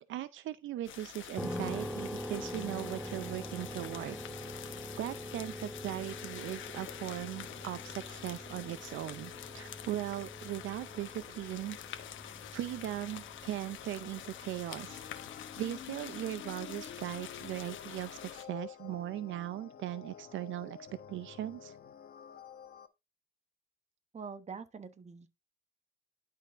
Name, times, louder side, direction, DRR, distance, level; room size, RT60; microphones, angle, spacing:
voice 1, 0.0-4.2 5.0-11.8 12.5-15.0 15.6-20.8 21.1-21.8, right 13 dB, 75° right, 0.5 m, -39 dB
sound 1, 0.8-18.4, left 11 dB, 75° left, 1.0 m, -47 dB
sound 2, 1.4-16.0, equal, ahead, 1.0 m, -44 dB
sound 3, 14.9-22.9, left 7 dB, 50° left, 1.0 m, -49 dB
voice 2, 24.1-25.3, right 5 dB, 35° right, 1.0 m, -45 dB
11.0 x 4.1 x 3.5 m
cardioid pair, 90°, 20 cm